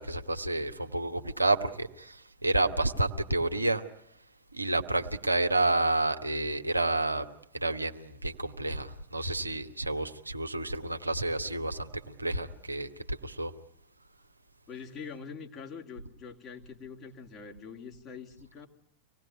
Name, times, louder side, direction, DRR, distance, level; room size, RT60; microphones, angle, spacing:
voice 1, 0.0-3.8 4.5-7.3 7.5-13.5, right 2 dB, 85° right, 6 dB, 1.2 m, -30 dB
voice 2, 14.7-18.7, left 6 dB, 30° left, 2 dB, 2.8 m, -44 dB
25.5 x 18.5 x 9.3 m, 0.71 s
figure-of-eight pair, 90°, 0 cm